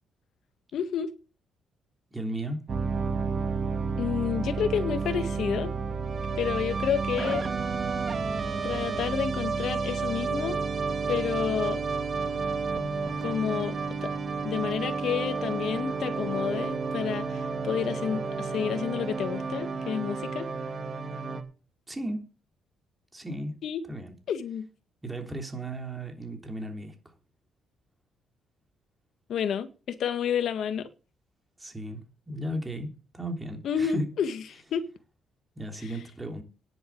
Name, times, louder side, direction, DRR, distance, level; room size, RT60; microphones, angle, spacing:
voice 1, 0.7-1.1 4.0-5.7 6.4-7.5 8.6-10.6 11.1-11.8 13.2-13.8 14.0-14.1 14.4-20.5 23.6-23.8 24.3-24.7 29.3-30.9 33.6-34.9, left 8 dB, 70° left, 1.7 m, -30 dB
voice 2, 2.1-2.6 21.9-22.2 23.1-23.6 23.9-24.1 25.0-26.9 31.6-32.0 32.3-34.1 35.6-36.4, right 1 dB, 15° right, 3.3 m, -35 dB
sound 1, 2.7-21.4, right 4 dB, 45° right, 2.2 m, -31 dB
10.0 x 7.7 x 8.6 m
cardioid pair, 90°, 0 cm